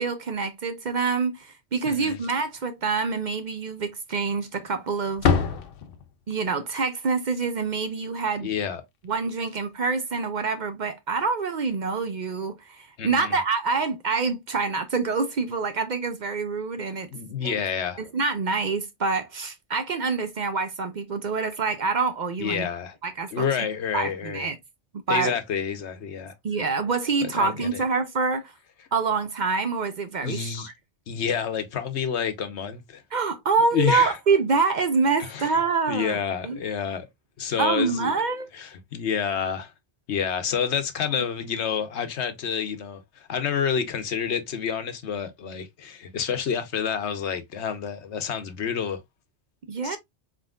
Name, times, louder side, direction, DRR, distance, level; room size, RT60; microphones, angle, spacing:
voice 1, 0.0-5.3 6.3-8.5 9.0-17.1 17.4-17.5 18.0-22.7 23.0-23.5 23.9-24.6 25.1-25.3 26.4-28.5 28.9-30.7 33.1-36.6 37.6-38.5 41.2-41.3 49.7-50.0, right 4 dB, 50° right, 0.6 m, -26 dB
voice 2, 1.8-2.2 8.4-8.8 13.0-13.4 17.1-18.0 22.4-23.0 23.3-24.5 25.1-26.3 27.2-27.8 30.2-30.7 31.1-33.0 33.7-34.2 35.2-35.5 35.9-37.1 37.4-38.1 38.5-39.7 40.1-49.0 49.8-50.0, left 7 dB, 85° left, 1.1 m, -28 dB
Slam, 2.0-2.7 3.0-3.1 3.5-3.6 4.4-4.8 5.1-6.4 9.0-9.1 9.4-9.6 11.1-11.3, left 6 dB, 65° left, 0.7 m, -27 dB
4.2 x 3.7 x 2.3 m
omnidirectional pair, 1.1 m